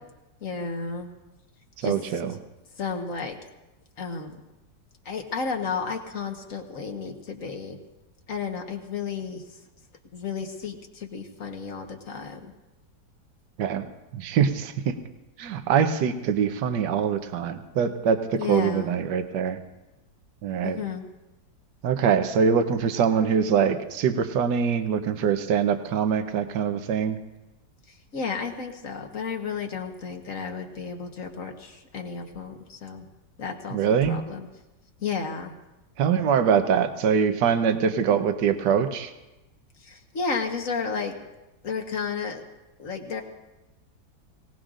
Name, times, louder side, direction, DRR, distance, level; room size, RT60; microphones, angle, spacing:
voice 1, 0.4-1.1 1.8-1.9 2.8-3.4 4.0-4.3 5.0-7.8 8.3-9.4 10.1-12.5 18.4-18.9 20.6-21.0 28.1-33.1 33.4-34.5 35.0-35.5 39.9-41.2 41.6-42.4 42.8-43.2, left 5 dB, 50° left, 4 dB, 1.6 m, -32 dB
voice 2, 1.8-2.4 13.6-13.9 14.1-14.9 15.4-19.6 20.4-20.8 21.8-27.2 33.7-34.2 36.0-39.1, right 7 dB, 75° right, 8 dB, 1.5 m, -23 dB
24.5 x 17.5 x 2.5 m, 1.0 s
omnidirectional pair, 1.9 m